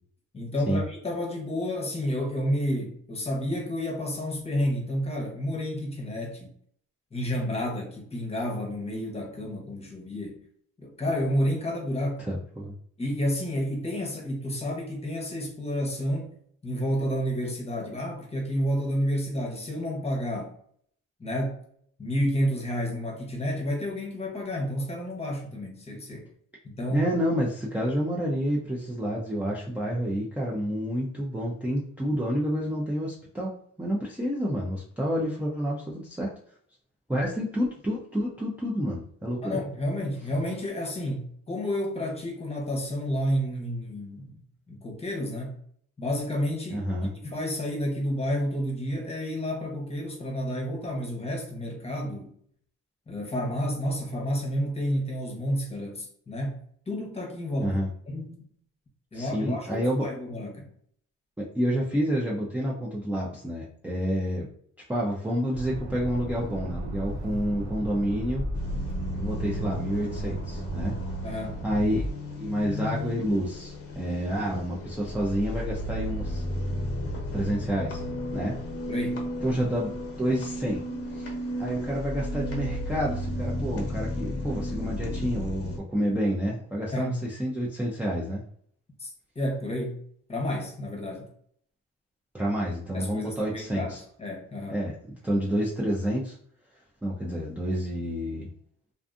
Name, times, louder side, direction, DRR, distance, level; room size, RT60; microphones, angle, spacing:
voice 1, 0.3-6.5 7.1-10.4 10.8-12.3 13.0-16.3 16.6-20.5 21.2-21.6 22.0-26.3 26.6-27.1 39.4-45.6 46.0-46.9 47.2-52.3 53.1-57.8 58.1-58.5 59.1-60.7 71.2-71.6 78.9-79.2 86.9-87.2 89.0-90.0 90.3-91.3 92.9-94.8, equal, 20° left, 0 dB, 0.8 m, -30 dB
voice 2, 12.2-12.7 26.9-36.3 37.1-39.6 46.7-47.1 57.6-57.9 59.1-60.1 61.4-64.5 64.9-68.5 69.1-71.0 71.6-72.0 72.4-76.4 77.3-78.0 78.3-78.6 79.4-80.8 81.1-81.3 81.6-88.4 92.3-94.0 94.7-96.4 97.0-98.5, equal, 5° right, -5 dB, 0.4 m, -29 dB
Accelerating revving vroom, 65.5-72.1, right 1 dB, 65° right, 0.8 m, -35 dB
sound 1, 68.5-85.8, equal, 50° left, 0.7 m, -34 dB
2.5 x 2.3 x 2.5 m, 0.62 s
cardioid pair, 90°, 30 cm